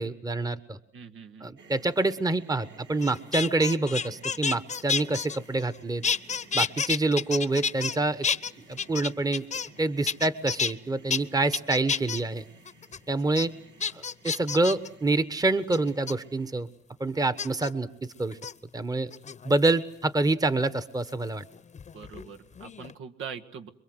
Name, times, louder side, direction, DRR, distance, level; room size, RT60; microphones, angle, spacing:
voice 1, 0.0-0.8 1.4-6.0 6.5-8.3 8.7-9.4 9.8-12.4 13.1-13.5 13.9-16.7 17.0-18.4 18.7-19.1 19.4-21.4, right 2 dB, 20° right, 13 dB, 1.3 m, -27 dB
voice 2, 0.9-1.5 21.9-23.7, right 7 dB, 80° right, 5 dB, 2.0 m, -42 dB
sound 1, 1.6-16.6, right 3 dB, 60° right, 4.2 m, -55 dB
sound 2, 3.0-5.8 6.0-8.0 8.2-9.8 10.1-10.7 11.1-11.2 11.5-12.2 12.7-13.0 13.4-13.5 13.8-14.9 15.7-16.1 17.4-17.7 18.3-18.5 19.1-19.7 21.1-22.3 22.6-22.9, left 6 dB, 35° left, 1.0 m, -30 dB
26.5 x 23.0 x 8.0 m, 0.66 s
cardioid pair, 90°, 20 cm